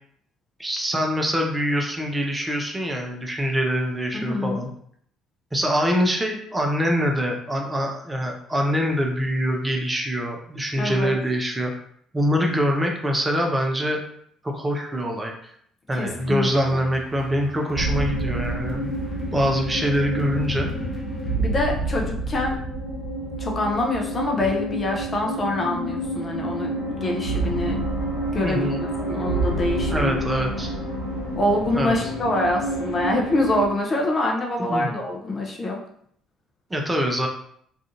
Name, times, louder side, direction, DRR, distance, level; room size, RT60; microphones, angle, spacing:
voice 1, 0.6-4.7 5.5-11.7 12.1-14.0 14.4-15.3 15.9-18.9 19.3-20.7 28.4-28.8 29.9-30.7 31.7-31.9 34.7-34.9 36.7-37.3, equal, 15° right, 1 dB, 0.5 m, -24 dB
voice 2, 4.1-4.6 10.8-11.2 15.9-16.8 21.4-22.6 23.4-27.8 28.3-30.2 31.4-35.8, left 1 dB, 35° left, 0 dB, 0.6 m, -25 dB
sound 1, 16.0-21.4, left 2 dB, 10° left, 0.9 m, -41 dB
sound 2, 17.7-33.6, right 1 dB, 85° left, 0.5 m, -28 dB
2.4 x 2.4 x 2.7 m, 0.66 s
figure-of-eight pair, 50°, 0 cm